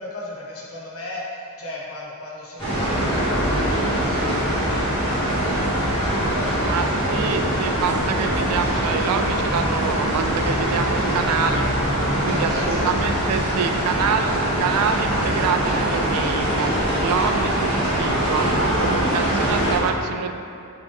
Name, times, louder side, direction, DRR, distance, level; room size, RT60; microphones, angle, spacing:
voice 1, 0.0-7.3 12.5-14.2, left 2 dB, 70° left, -4 dB, 0.9 m, -37 dB
sound 1, 2.6-19.8, right 1 dB, 25° left, 1.4 m, -22 dB
voice 2, 6.6-11.7 12.2-20.3, right 6 dB, 85° right, 7 dB, 0.3 m, -26 dB
3.8 x 3.4 x 3.5 m, 2.6 s
head